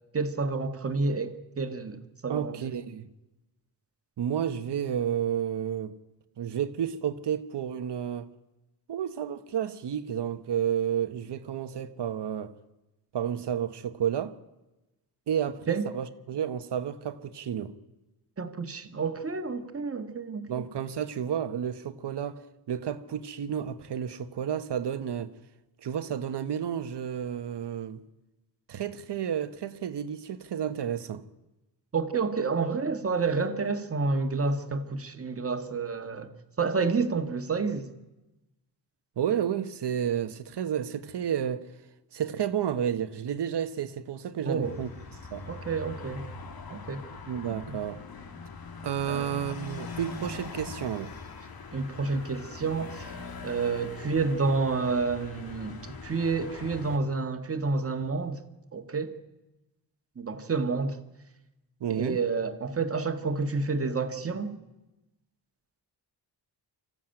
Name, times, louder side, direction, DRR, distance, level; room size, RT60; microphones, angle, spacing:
voice 1, 0.1-2.7 15.7-15.9 18.4-20.7 31.9-37.9 44.4-44.8 45.5-46.2 46.7-47.0 47.7-47.8 49.1-49.4 51.7-53.2 53.4-58.4 58.7-59.1 60.1-61.0 61.9-64.5, right 4 dB, 35° right, 1.7 m, -29 dB
voice 2, 2.3-3.1 4.2-5.9 6.4-8.3 8.9-12.5 13.1-14.4 15.3-17.7 20.5-25.3 25.8-28.0 28.7-31.3 39.2-41.7 42.1-44.9 45.3-45.5 47.3-48.0 48.8-51.1 61.8-62.2, right 9 dB, 75° right, 1.3 m, -31 dB
sound 1, 44.6-57.0, left 4 dB, 55° left, 2.1 m, -42 dB
25.0 x 15.0 x 9.0 m
wide cardioid pair, 150°, 42 cm